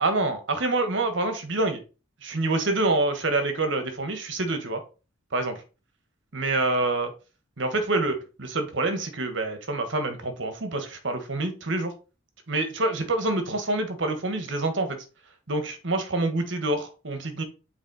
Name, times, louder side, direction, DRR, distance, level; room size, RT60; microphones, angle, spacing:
voice 1, 0.0-1.8 2.2-4.8 5.3-5.6 6.3-7.1 7.6-11.9 12.5-15.0 15.5-17.4, right 2 dB, 60° right, 7 dB, 1.5 m, -26 dB
7.3 x 4.3 x 4.2 m, 0.34 s
head